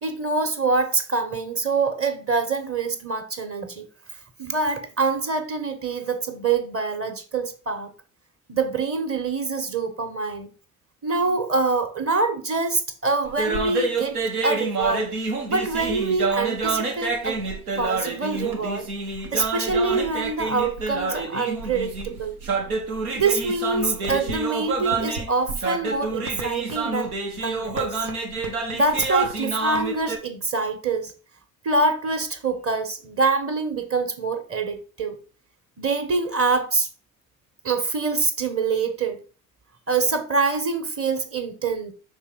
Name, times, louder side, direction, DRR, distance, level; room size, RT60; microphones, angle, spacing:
voice 1, 0.0-3.9 4.4-7.9 8.5-10.5 11.0-14.1 14.4-15.1 15.5-17.4 17.8-18.9 19.3-22.4 23.1-27.1 27.4-28.1 28.7-31.1 31.6-35.2 35.8-36.9 37.6-39.2 39.9-41.9, right 3 dB, 30° right, 1.4 m, -25 dB
sound 1, 13.3-30.2, right 3 dB, 90° right, 0.9 m, -28 dB
5.8 x 3.5 x 4.6 m
hypercardioid pair, 55°, 43 cm